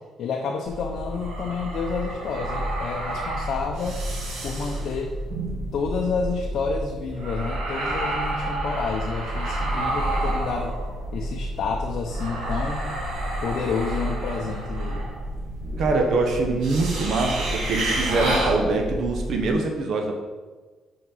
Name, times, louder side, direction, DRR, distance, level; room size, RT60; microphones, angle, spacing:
voice 1, 0.2-4.0 4.4-5.1 5.7-10.8 11.1-12.9 13.4-15.1, left 5 dB, 55° left, 1 dB, 0.7 m, -29 dB
sound 1, 0.6-19.5, right 1 dB, 85° right, 2.1 m, -29 dB
voice 2, 15.8-20.2, right 3 dB, 55° right, 2 dB, 0.8 m, -24 dB
5.7 x 5.2 x 5.5 m, 1.3 s
cardioid pair, 160°, 0 cm